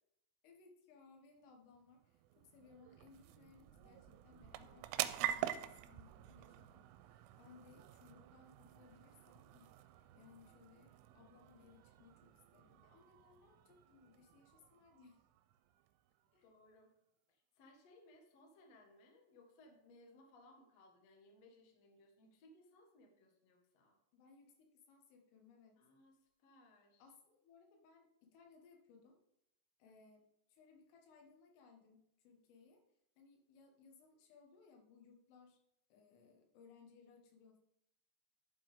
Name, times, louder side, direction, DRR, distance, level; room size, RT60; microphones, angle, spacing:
voice 1, 0.4-2.2 2.4-9.7 10.1-15.2 16.3-16.5 24.1-25.8 27.0-29.2 29.8-32.8 33.2-35.6 35.9-37.6, left 5 dB, 90° left, 3 dB, 4.1 m, -64 dB
sound 1, 1.5-16.4, right 12 dB, 90° right, 3.1 m, -47 dB
voice 2, 16.4-16.9 17.3-24.0 25.8-27.1 29.8-30.0, left 1 dB, 60° left, 1 dB, 1.7 m, -64 dB
11.5 x 7.7 x 3.6 m, 0.80 s
omnidirectional pair, 5.6 m